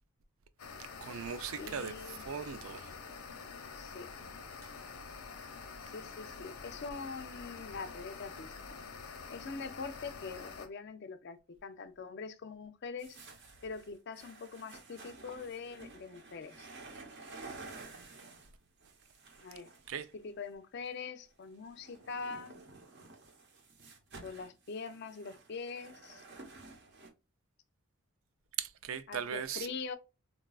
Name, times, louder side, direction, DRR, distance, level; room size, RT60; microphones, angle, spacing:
sound 1, 0.6-10.7, left 5 dB, 85° left, 0.7 m, -47 dB
voice 1, 1.0-1.9 2.3-2.9 19.9-20.1 28.6-29.7, right 8 dB, 70° right, 0.4 m, -38 dB
voice 2, 1.6-2.3 3.7-4.1 5.8-8.8 9.3-13.2 13.6-16.7 19.4-19.7 20.1-22.6 24.2-26.2 29.1-30.0, left 5 dB, 50° left, 0.4 m, -43 dB
sound 2, 13.0-20.5 21.4-27.1, right 3 dB, 50° right, 0.8 m, -52 dB
3.9 x 2.3 x 2.2 m
head